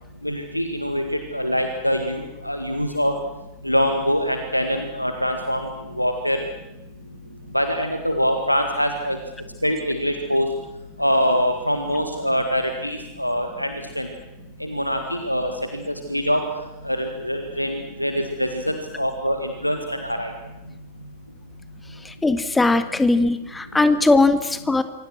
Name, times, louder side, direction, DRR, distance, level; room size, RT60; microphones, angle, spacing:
voice 1, 0.2-1.0 1.3-3.1 3.6-5.7 6.0-6.4 7.5-9.2 9.6-10.5 11.0-13.7 14.0-14.1 14.6-16.4 16.8-20.3, equal, 90° left, 6 dB, 1.8 m, -24 dB
voice 2, 22.1-24.8, left 3 dB, 10° left, 11 dB, 1.7 m, -19 dB
26.0 x 25.0 x 6.3 m, 0.94 s
figure-of-eight pair, 90°, 0 cm